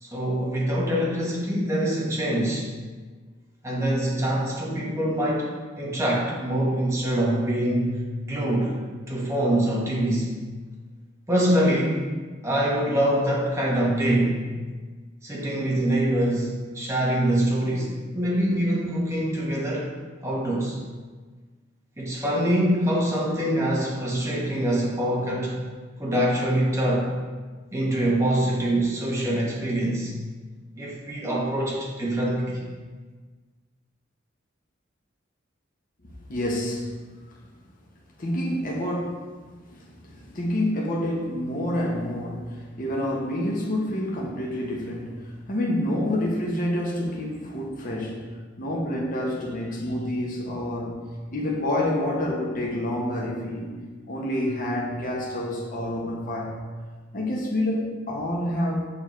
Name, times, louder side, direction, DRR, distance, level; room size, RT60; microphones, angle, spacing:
voice 1, 0.0-2.7 3.6-7.9 8.3-8.8 9.1-10.3 11.3-12.1 12.4-14.4 15.2-19.9 20.2-20.8 22.0-25.5 26.0-27.1 27.7-30.1 30.8-32.6, right 1 dB, 15° right, -5 dB, 1.2 m, -24 dB
voice 2, 36.3-36.9 38.2-39.2 39.7-48.3 48.6-56.6 57.1-58.9, left 1 dB, 45° left, -2 dB, 0.8 m, -28 dB
6.6 x 5.3 x 3.1 m, 1.4 s
head